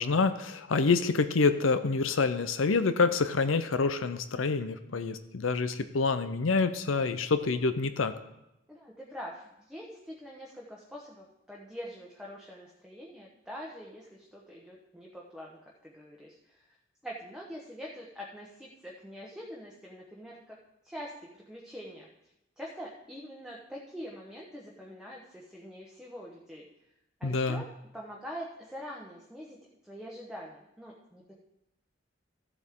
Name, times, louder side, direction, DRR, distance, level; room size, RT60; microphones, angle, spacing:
voice 1, 0.0-8.1 27.2-27.6, left 4 dB, 85° left, 11 dB, 0.7 m, -27 dB
voice 2, 8.7-16.8 17.0-20.6 20.8-22.1 22.6-26.7 27.2-27.6 27.9-31.4, equal, 5° right, -3 dB, 1.1 m, -44 dB
14.0 x 8.0 x 3.7 m, 0.88 s
head